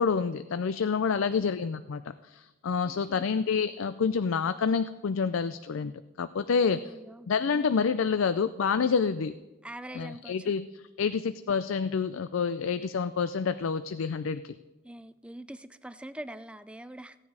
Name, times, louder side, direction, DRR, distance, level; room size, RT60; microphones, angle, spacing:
voice 1, 0.0-5.9 6.2-6.9 7.3-9.4 9.9-14.6, left 5 dB, 80° left, 12 dB, 0.4 m, -28 dB
voice 2, 2.8-3.3 6.7-7.7 9.6-10.5 14.8-17.2, right 1 dB, 5° right, 13 dB, 0.3 m, -44 dB
16.5 x 9.8 x 4.8 m, 1.1 s
head